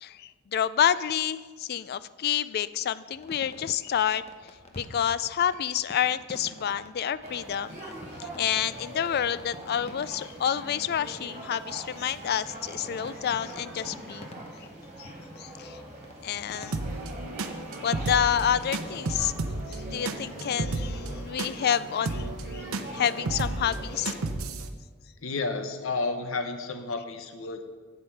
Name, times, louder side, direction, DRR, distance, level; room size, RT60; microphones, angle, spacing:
voice 1, 0.0-4.2 4.8-7.9 8.2-14.3 15.0-15.1 15.4-15.8 16.2-16.8 17.8-19.3 19.7-24.1, left 9 dB, 50° left, 16 dB, 0.3 m, -28 dB
sound 1, 3.1-16.8, left 1 dB, 30° left, 0.9 m, -50 dB
sound 2, 7.2-24.3, right 1 dB, 35° right, 2.4 m, -43 dB
sound 3, 16.6-24.7, right 2 dB, 85° right, 0.7 m, -33 dB
voice 2, 25.2-27.7, left 3 dB, 65° left, 7 dB, 0.8 m, -31 dB
8.1 x 7.7 x 5.8 m, 1.4 s
head